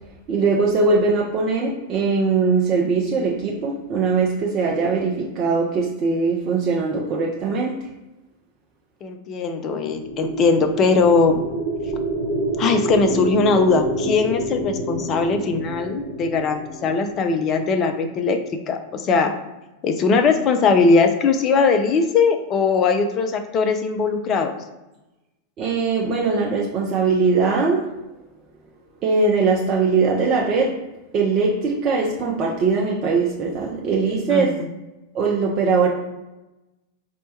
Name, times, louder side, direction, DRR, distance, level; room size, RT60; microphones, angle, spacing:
voice 1, 0.3-7.8 25.6-27.8 29.0-30.7 31.1-34.5 35.1-35.9, right 4 dB, 35° right, -3 dB, 0.5 m, -21 dB
voice 2, 9.0-11.4 12.6-18.4 18.7-19.3 19.8-24.6 34.3-34.7, left 4 dB, 30° left, 7 dB, 0.4 m, -20 dB
sound 1, 9.8-17.9, right 2 dB, 5° right, 1.1 m, -27 dB
4.2 x 2.2 x 2.7 m, 1.0 s
figure-of-eight pair, 90°, 0 cm